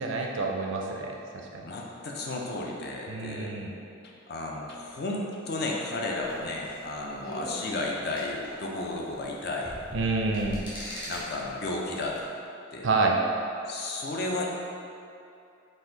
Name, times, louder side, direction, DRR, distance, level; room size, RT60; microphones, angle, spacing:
voice 1, 0.0-1.6 3.1-3.7 9.9-10.6 12.8-13.2, right 3 dB, 60° right, 0 dB, 0.4 m, -28 dB
voice 2, 1.6-3.5 4.0-9.8 11.1-12.3 12.7-12.9 13.7-14.5, left 2 dB, 50° left, -1 dB, 0.4 m, -33 dB
sound 1, 6.2-12.2, equal, 20° left, 0.9 m, -42 dB
4.2 x 2.5 x 3.8 m, 2.6 s
head